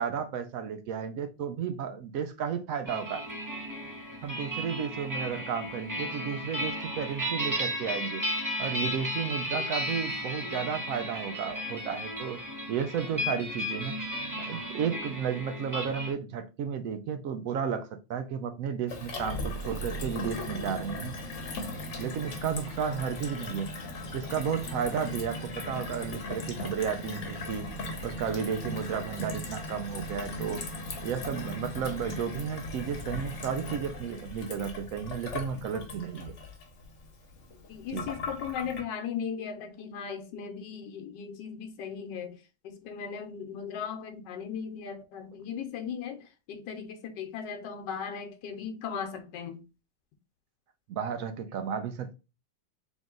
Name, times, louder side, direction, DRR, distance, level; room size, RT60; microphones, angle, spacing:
voice 1, 0.0-3.2 4.2-8.2 8.6-12.4 12.7-14.0 14.5-21.1 22.0-23.7 24.1-27.7 28.0-30.7 31.0-36.3 37.9-38.1 50.9-52.1, right 7 dB, 75° right, 0.8 m, -33 dB
sound 1, 2.9-16.1, equal, 25° right, 0.4 m, -34 dB
Gurgling / Water tap faucet / Sink (filling or washing), 18.9-38.8, left 1 dB, 50° left, 1.1 m, -38 dB
voice 2, 37.7-42.3 42.6-46.2 46.5-49.6, left 7 dB, 85° left, 1.4 m, -37 dB
3.6 x 3.0 x 3.7 m
omnidirectional pair, 1.9 m